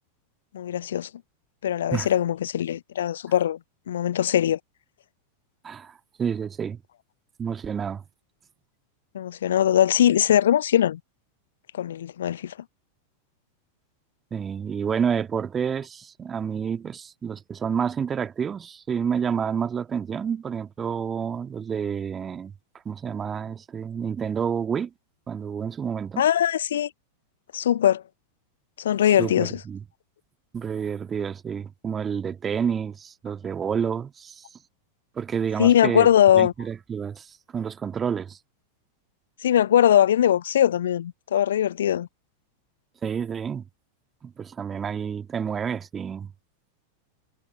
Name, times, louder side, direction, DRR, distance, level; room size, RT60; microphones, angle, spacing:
voice 1, 0.5-1.1 1.6-3.6 3.9-4.6 9.1-11.0 11.7-12.5 26.2-26.9 27.5-28.0 28.8-29.6 35.6-36.5 39.4-42.1, left 10 dB, 60° left, 0.4 m, -21 dB
voice 2, 5.6-6.8 7.4-8.0 14.3-22.5 22.8-24.9 25.3-26.2 29.2-29.8 30.5-34.4 35.1-36.1 36.3-38.4 43.0-43.6 44.2-46.3, right 7 dB, 20° right, 1.7 m, -29 dB
figure-of-eight pair, 90°, 0 cm